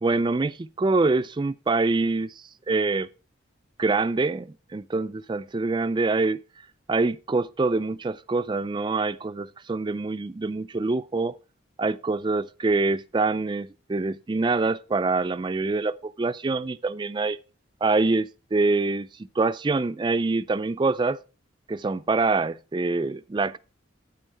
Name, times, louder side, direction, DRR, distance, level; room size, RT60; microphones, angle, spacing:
voice 1, 0.0-2.3 2.7-3.1 3.8-6.4 6.9-11.3 11.8-17.4 17.8-19.1 19.4-21.2 21.7-23.6, right 3 dB, 25° right, 0.3 m, -25 dB
9.3 x 8.9 x 3.4 m
head